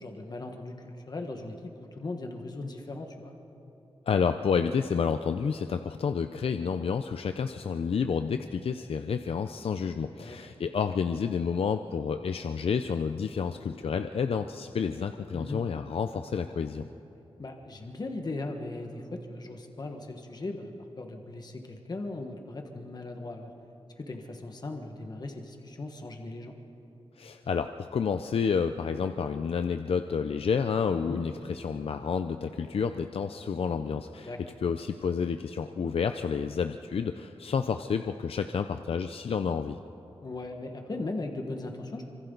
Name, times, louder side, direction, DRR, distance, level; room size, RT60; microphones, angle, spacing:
voice 1, 0.0-3.3 10.2-10.4 15.3-15.6 17.4-23.5 24.0-26.5 31.0-31.2 34.2-34.4 40.2-42.1, left 2 dB, 40° left, 3 dB, 1.6 m, -38 dB
voice 2, 4.1-16.9 27.2-34.3 34.6-39.8, left 6 dB, 65° left, 8 dB, 0.6 m, -30 dB
27.0 x 25.0 x 4.0 m, 3.0 s
wide cardioid pair, 125°, 10 cm